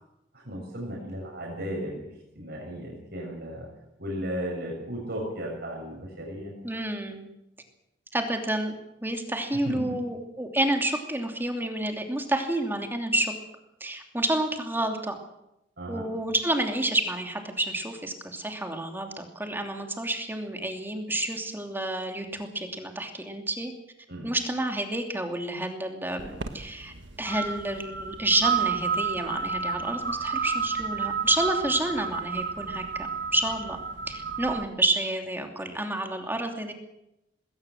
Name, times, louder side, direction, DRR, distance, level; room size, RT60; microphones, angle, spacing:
voice 1, 0.3-3.7 4.0-6.5 9.6-10.0 15.8-16.1 24.1-24.3, equal, 60° right, -1 dB, 6.8 m, -35 dB
voice 2, 6.6-7.3 8.1-8.8 9.0-13.3 13.8-15.2 15.9-23.7 24.2-26.9 27.2-33.1 33.3-36.7, right 1 dB, 10° right, 4 dB, 2.8 m, -29 dB
sound 1, 26.2-34.6, right 6 dB, 80° right, 1.6 m, -31 dB
20.0 x 18.0 x 7.7 m, 0.86 s
head